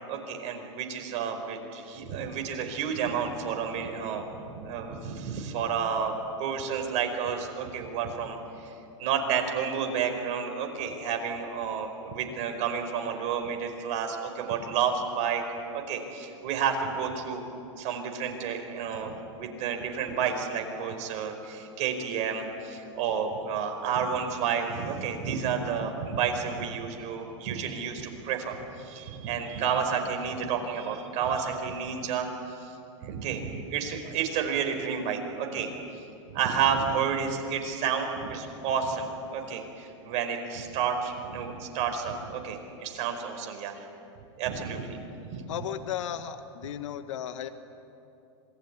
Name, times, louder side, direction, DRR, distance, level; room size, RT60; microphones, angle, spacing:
voice 1, 0.1-6.1 6.4-8.7 9.0-15.4 15.7-17.4 17.8-32.3 32.6-32.7 33.0-35.7 36.3-43.7 44.4-45.0 45.3-45.4, right 7 dB, 45° right, 4 dB, 5.0 m, -30 dB
voice 2, 45.5-47.5, left 10 dB, 75° left, 10 dB, 1.5 m, -35 dB
27.0 x 19.5 x 9.8 m, 2.7 s
hypercardioid pair, 120°, 16 cm